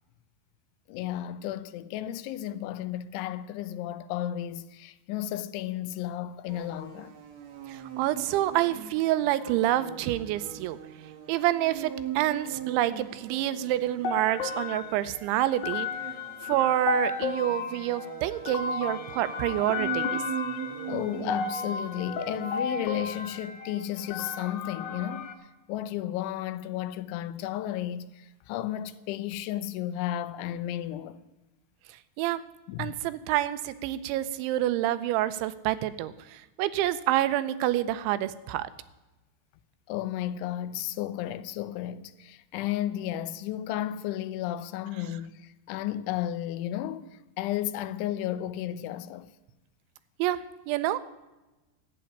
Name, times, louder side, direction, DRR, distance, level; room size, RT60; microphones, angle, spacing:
voice 1, 0.9-7.1 20.9-25.3 25.7-31.2 32.7-33.0 39.9-49.3, left 12 dB, 85° left, 3.2 m, -33 dB
sound 1, 6.5-23.1, right 9 dB, 65° right, 1.7 m, -41 dB
voice 2, 7.7-10.8 11.3-15.9 16.4-20.2 32.2-32.4 32.8-38.7 50.2-51.0, right 14 dB, 85° right, 3.1 m, -27 dB
sound 2, 14.0-25.3, left 5 dB, 70° left, 3.2 m, -34 dB
12.0 x 9.1 x 9.9 m
omnidirectional pair, 5.3 m